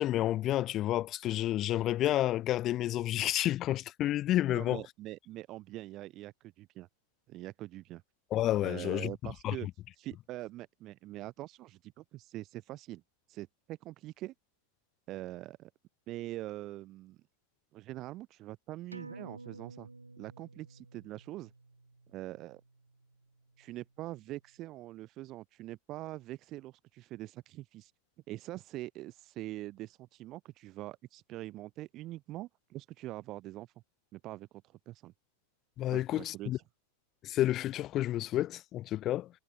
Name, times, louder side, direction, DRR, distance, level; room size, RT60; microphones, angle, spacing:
voice 1, 0.0-4.8 8.3-9.1 9.4-9.5 35.8-36.6 37.2-39.3, left 14 dB, 35° left, 0.4 m, -30 dB
voice 2, 4.5-6.9 7.3-8.0 8.6-9.7 10.0-13.0 13.3-14.3 15.1-15.7 16.1-17.2 17.7-19.9 20.2-21.5 22.1-22.6 23.6-27.9 28.3-33.7 34.1-35.1 35.9-36.6, right 16 dB, 35° right, 2.1 m, -43 dB
sound 1, 18.9-23.9 24.2-24.3, right 3 dB, 80° right, 1.5 m, -52 dB
figure-of-eight pair, 90°, 0 cm